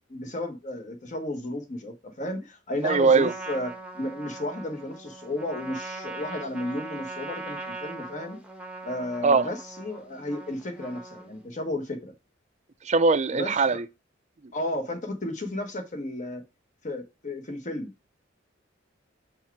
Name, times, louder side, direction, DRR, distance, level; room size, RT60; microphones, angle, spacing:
voice 1, 0.0-8.4 8.8-12.1 13.3-13.8 14.5-16.4 16.8-17.9, left 1 dB, 40° left, 1.2 m, -33 dB
Trumpet, 2.8-11.5, right 2 dB, 5° right, 0.9 m, -40 dB
voice 2, 2.8-3.3 9.2-9.4 12.9-13.8, right 4 dB, 35° right, 0.5 m, -20 dB
4.6 x 4.5 x 4.7 m
head